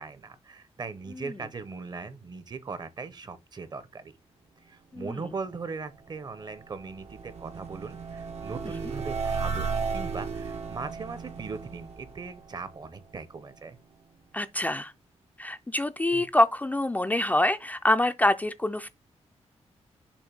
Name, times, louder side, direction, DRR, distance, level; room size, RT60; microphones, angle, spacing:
voice 1, 0.0-4.1 4.7-13.8 16.1-16.2, right 4 dB, 35° right, 0.8 m, -39 dB
sound 1, 6.0-13.2, right 5 dB, 75° right, 1.1 m, -35 dB
voice 2, 14.3-14.9 15.4-18.9, left 1 dB, 15° left, 0.4 m, -26 dB
7.1 x 2.6 x 5.2 m
wide cardioid pair, 150°, 11 cm